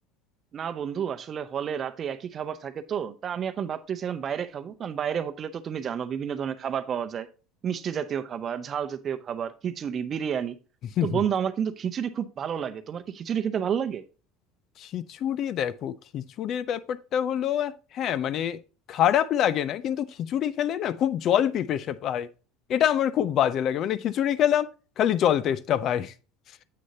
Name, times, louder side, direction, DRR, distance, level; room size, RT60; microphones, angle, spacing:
voice 1, 0.5-7.3 7.6-10.6 11.0-14.0, right 8 dB, 40° right, 0.7 m, -30 dB
voice 2, 14.8-18.6 18.9-22.3 22.7-24.7 25.0-26.1, left 10 dB, 50° left, 0.4 m, -25 dB
7.8 x 6.3 x 2.8 m
supercardioid pair, 100°, 0 cm